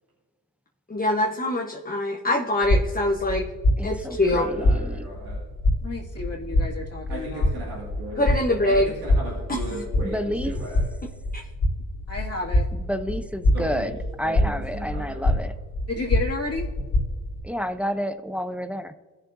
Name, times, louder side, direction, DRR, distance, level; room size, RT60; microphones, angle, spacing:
voice 1, 0.9-3.4 3.8-4.4 8.2-8.9 9.5-9.6 11.3-11.4, left 1 dB, 25° left, 0 dB, 1.0 m, -23 dB
sound 1, 2.6-17.4, left 1 dB, 75° left, 2.9 m, -26 dB
voice 2, 3.8-5.0 10.0-10.6 12.7-15.5 17.4-18.9, equal, 5° right, 10 dB, 0.6 m, -30 dB
voice 3, 4.3-5.4 7.1-8.2 8.6-10.8 13.5-13.9 14.2-15.3, right 1 dB, 90° right, -6 dB, 2.2 m, -36 dB
voice 4, 5.8-7.5 12.1-12.7 15.9-16.7, left 3 dB, 40° left, -1 dB, 2.2 m, -31 dB
15.5 x 6.6 x 2.6 m, 1.5 s
cardioid pair, 50°, 37 cm